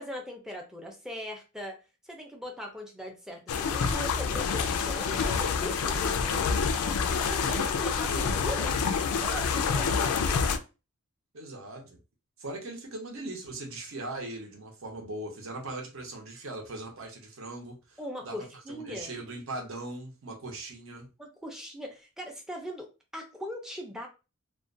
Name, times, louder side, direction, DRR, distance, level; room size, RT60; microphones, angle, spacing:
voice 1, 0.0-1.8 2.0-6.5 7.1-8.8 9.2-10.4 18.0-19.1 21.2-22.9 23.1-24.1, left 1 dB, ahead, 1 dB, 0.4 m, -40 dB
sound 1, 3.5-10.6, left 5 dB, 80° left, 0.3 m, -27 dB
voice 2, 7.4-7.7 11.3-12.0 12.4-18.4 18.7-21.1, right 2 dB, 65° right, 1 dB, 0.7 m, -40 dB
2.4 x 2.2 x 2.4 m, 0.30 s
head